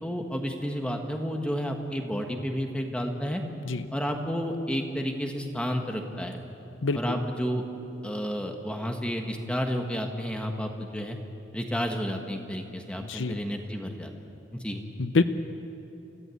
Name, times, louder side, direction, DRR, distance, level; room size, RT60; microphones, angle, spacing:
voice 1, 0.0-3.4 3.9-6.4 6.9-7.6 8.0-11.2 11.5-14.1 14.5-14.8, equal, 5° left, 3 dB, 1.5 m, -31 dB
voice 2, 6.8-7.2 13.0-13.4 15.0-15.2, left 3 dB, 90° left, 11 dB, 0.8 m, -26 dB
29.0 x 14.5 x 8.5 m, 2.7 s
head